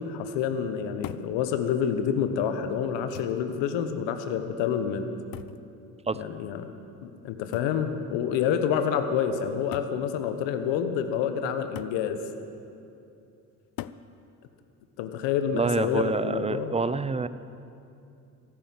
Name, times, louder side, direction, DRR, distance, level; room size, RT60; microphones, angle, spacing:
voice 1, 0.0-5.1 6.1-6.7 7.0-12.2 15.0-16.7, left 8 dB, 65° left, 8 dB, 1.3 m, -28 dB
sound 1, 1.0-1.4 2.4-2.5 3.1-3.5 5.3-5.7 7.5-7.8 8.9-9.0 9.7-10.0 11.8-12.0 13.8-14.1 15.6-16.0, left 13 dB, 50° left, 0.6 m, -41 dB
voice 2, 15.5-17.3, right 4 dB, 15° right, 14 dB, 0.6 m, -27 dB
14.5 x 11.0 x 8.6 m, 2.6 s
hypercardioid pair, 55°, 47 cm